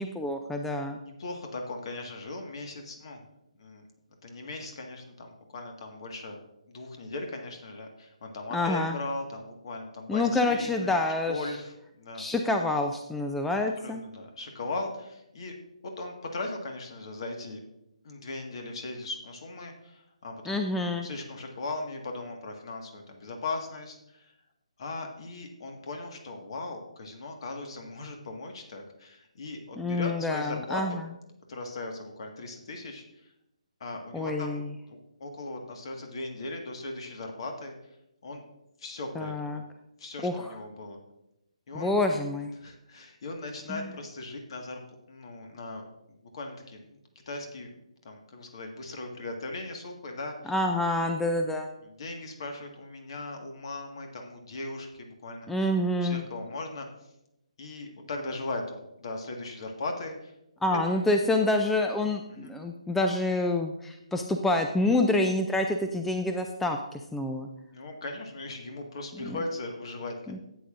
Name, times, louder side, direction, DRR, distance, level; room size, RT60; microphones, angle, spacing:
voice 1, 0.0-1.0 8.5-9.0 10.1-11.5 12.2-14.0 20.5-21.1 29.8-31.0 34.1-34.7 39.2-39.6 40.2-40.5 41.7-42.5 43.7-43.9 50.5-51.7 55.5-56.2 60.6-67.5 69.2-69.4 70.3-70.4, left 2 dB, 5° left, 4 dB, 0.4 m, -27 dB
voice 2, 1.0-3.2 3.6-3.9 4.2-6.4 6.7-11.0 11.3-12.3 13.8-15.6 15.8-17.6 18.0-20.6 20.8-24.3 24.8-31.0 31.5-33.3 33.8-34.6 34.9-37.7 38.2-38.4 38.8-39.6 40.0-41.0 41.7-41.9 42.6-44.8 45.1-45.8 46.1-47.0 47.3-47.7 48.0-50.5 51.8-55.5 56.0-56.9 57.6-60.3 60.9-61.0 62.3-62.5 67.7-70.4, left 2 dB, 50° left, 3 dB, 1.7 m, -38 dB
13.0 x 8.6 x 2.5 m, 0.85 s
figure-of-eight pair, 150°, 4 cm